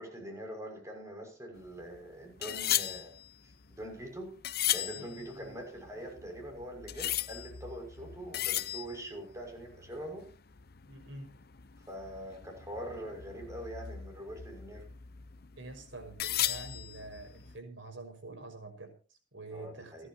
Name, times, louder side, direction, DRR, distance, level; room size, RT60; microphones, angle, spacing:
voice 1, 0.0-3.1 3.7-4.3 4.7-10.3 11.9-14.9 19.5-20.1, right 1 dB, 15° right, 2 dB, 6.0 m, -43 dB
sound 1, 1.6-17.6, left 12 dB, 50° left, 0.8 m, -38 dB
voice 2, 4.9-5.6 10.9-11.3 15.6-20.1, right 2 dB, 75° right, 6 dB, 5.7 m, -47 dB
30.0 x 11.0 x 2.9 m, 0.35 s
head